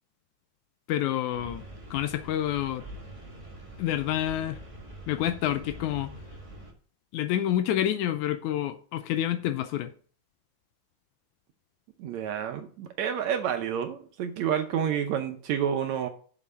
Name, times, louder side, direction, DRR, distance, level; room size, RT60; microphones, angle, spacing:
voice 1, 0.9-1.6 1.9-2.8 3.8-4.6 5.1-6.1 7.1-9.9, left 12 dB, 80° left, 1.9 m, -28 dB
sound 1, 1.3-6.7, right 1 dB, 20° right, 0.9 m, -45 dB
voice 2, 12.0-16.1, right 8 dB, 70° right, 1.8 m, -29 dB
7.3 x 6.2 x 5.5 m
omnidirectional pair, 3.7 m